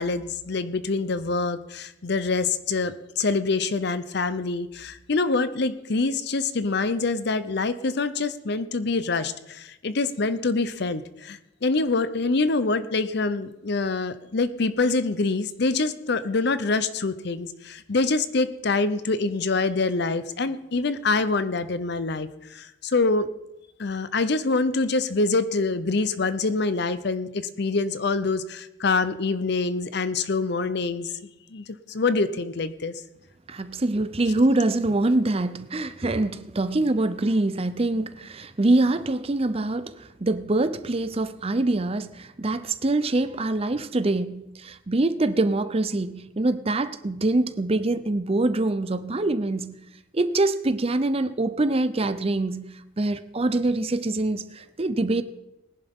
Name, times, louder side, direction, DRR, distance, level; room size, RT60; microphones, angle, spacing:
voice 1, 0.0-23.3 23.8-31.1 31.5-32.9, left 3 dB, 60° left, 0.7 m, -25 dB
voice 2, 33.5-49.8 50.1-52.6 53.0-55.2, right 2 dB, 30° right, 0.6 m, -24 dB
19.5 x 11.0 x 3.7 m
head